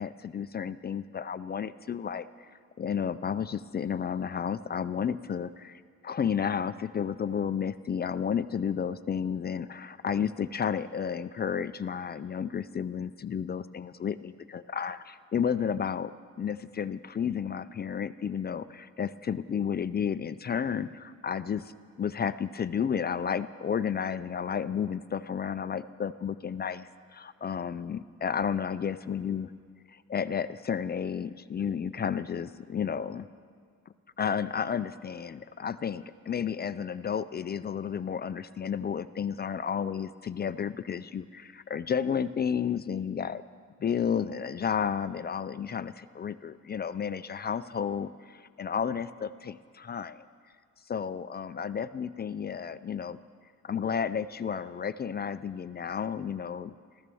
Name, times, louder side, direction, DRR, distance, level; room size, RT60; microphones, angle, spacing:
voice 1, 0.0-2.3 2.8-16.1 16.4-21.7 22.0-29.5 29.9-33.3 34.2-43.4 43.8-50.3 50.9-53.2 53.6-56.7, left 7 dB, 35° left, 14 dB, 0.4 m, -32 dB
14.0 x 14.0 x 6.9 m, 2.1 s
wide cardioid pair, 130°, 30 cm